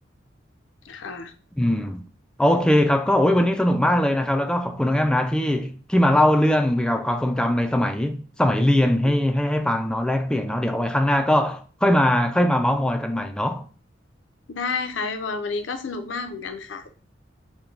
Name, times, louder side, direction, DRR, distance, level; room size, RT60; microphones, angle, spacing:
voice 1, 0.8-1.3 14.5-16.8, left 4 dB, 85° left, 0.6 m, -30 dB
voice 2, 1.6-2.1 2.4-13.7, left 1 dB, 5° left, 0.3 m, -21 dB
6.0 x 2.2 x 3.8 m
head